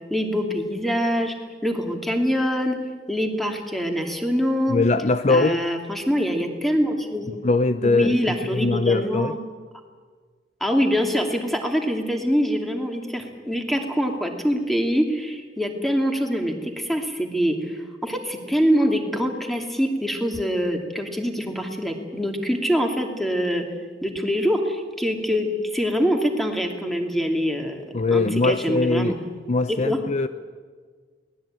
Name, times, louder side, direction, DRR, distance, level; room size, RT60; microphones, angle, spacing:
voice 1, 0.1-1.3 1.6-2.8 3.1-4.8 5.3-7.3 7.8-9.4 10.6-23.7 24.0-27.8 28.1-29.2 29.7-30.0, equal, ahead, 3 dB, 2.6 m, -24 dB
voice 2, 4.7-5.6 7.4-8.2 8.5-9.4 27.9-29.2 29.5-30.3, left 3 dB, 40° left, 11 dB, 0.6 m, -21 dB
23.0 x 19.0 x 8.9 m, 1.5 s
head